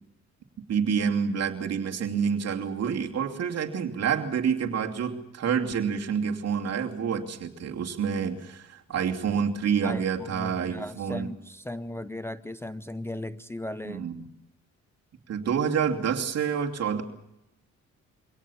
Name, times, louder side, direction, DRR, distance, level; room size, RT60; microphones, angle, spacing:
voice 1, 0.7-11.3 13.8-14.3 15.3-17.0, right 7 dB, 55° right, 3 dB, 2.8 m, -28 dB
voice 2, 9.8-14.0, left 1 dB, 10° left, 11 dB, 0.7 m, -37 dB
24.0 x 18.0 x 7.2 m, 0.85 s
cardioid pair, 90°, 30 cm